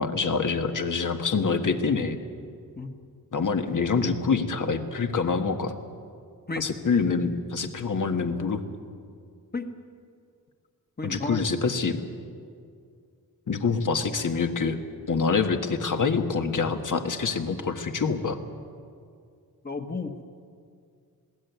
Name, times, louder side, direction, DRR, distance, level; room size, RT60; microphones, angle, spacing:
voice 1, 0.0-2.2 3.3-5.7 6.6-8.6 11.0-12.0 13.5-14.8 15.1-18.4, left 5 dB, 55° left, 7 dB, 1.6 m, -26 dB
voice 2, 11.0-11.4 19.6-20.1, left 3 dB, 25° left, 5 dB, 1.5 m, -32 dB
20.5 x 17.0 x 9.4 m, 2.3 s
wide cardioid pair, 120°, 36 cm